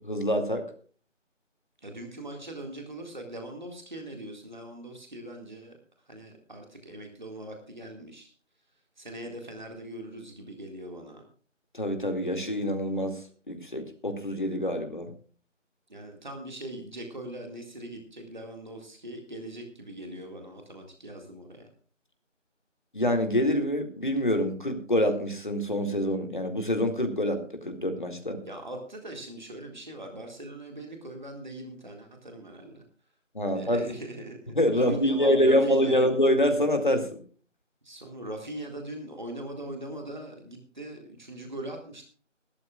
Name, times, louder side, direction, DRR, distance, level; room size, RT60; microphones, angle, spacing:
voice 1, 0.1-0.6 11.7-13.2 13.5-15.1 22.9-28.4 33.3-33.9 34.5-37.2, equal, 40° left, 5 dB, 2.2 m, -26 dB
voice 2, 1.8-5.8 6.1-8.3 9.0-11.2 15.9-21.7 28.5-32.8 33.5-36.1 37.8-42.0, right 1 dB, 40° right, 3 dB, 2.0 m, -41 dB
21.5 x 12.5 x 2.4 m, 0.41 s
figure-of-eight pair, 175°, 37 cm